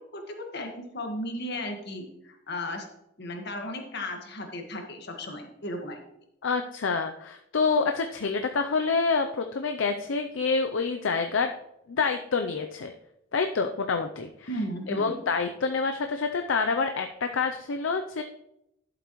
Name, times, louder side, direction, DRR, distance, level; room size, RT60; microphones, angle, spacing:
voice 1, 0.1-2.8 3.2-6.0 14.5-15.2, left 1 dB, 60° left, 3 dB, 1.7 m, -35 dB
voice 2, 6.4-11.5 11.9-12.9 13.3-14.5 14.9-18.2, left 4 dB, 75° left, 6 dB, 0.6 m, -27 dB
11.5 x 7.7 x 3.1 m, 0.82 s
head